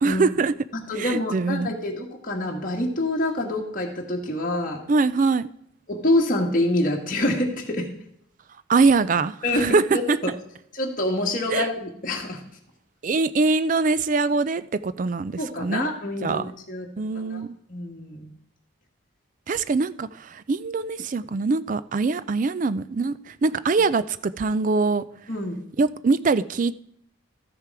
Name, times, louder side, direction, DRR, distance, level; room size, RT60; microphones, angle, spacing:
voice 1, 0.0-0.5 1.0-1.7 4.9-5.5 8.7-10.2 11.5-11.7 13.0-15.9 16.2-16.5 17.0-17.5 19.5-25.0 25.8-26.7, right 4 dB, 40° right, 0.3 m, -23 dB
voice 2, 0.9-4.8 5.9-7.9 9.4-10.3 10.7-12.4 15.4-16.9 17.1-17.4 17.7-18.3 25.3-25.6, left 1 dB, 40° left, 1.6 m, -26 dB
13.5 x 6.7 x 4.8 m
head